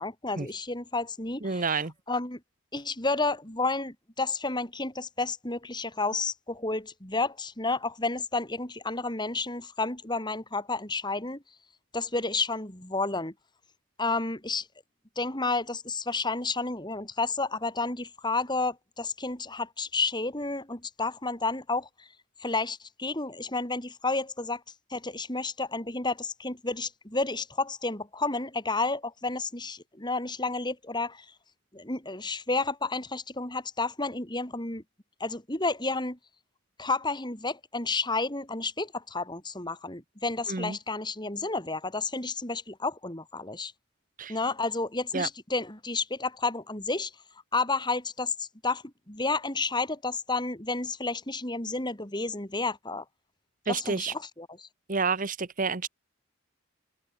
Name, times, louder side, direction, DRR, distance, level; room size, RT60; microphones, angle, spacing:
voice 1, 0.0-1.6 2.1-2.4 2.7-11.4 11.9-13.3 14.0-14.7 15.2-21.9 22.4-24.6 24.9-31.3 31.7-34.8 35.2-36.2 36.8-43.7 44.3-47.1 47.5-53.0 53.7-54.7, left 3 dB, 20° left, 3.8 m, -31 dB
voice 2, 1.4-1.9 40.5-40.8 44.2-44.4 45.1-45.3 53.7-54.1 54.9-55.9, right 4 dB, 40° right, 1.1 m, -29 dB
head